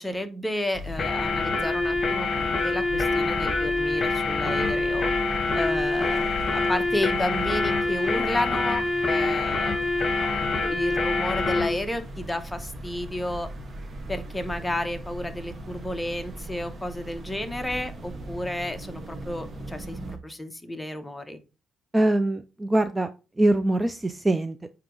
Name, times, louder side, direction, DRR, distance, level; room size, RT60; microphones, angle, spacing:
voice 1, 0.0-5.1 5.5-13.5 14.1-21.4, left 1 dB, 10° left, 7 dB, 1.0 m, -32 dB
sound 1, 0.7-20.2, right 1 dB, 40° right, 1.2 m, -39 dB
sound 2, 1.0-11.7, left 3 dB, 45° left, 1.3 m, -25 dB
voice 2, 21.9-23.1 23.4-24.7, right 1 dB, 15° right, 10 dB, 0.4 m, -23 dB
8.8 x 2.9 x 3.7 m, 0.31 s
cardioid pair, 90°, 0 cm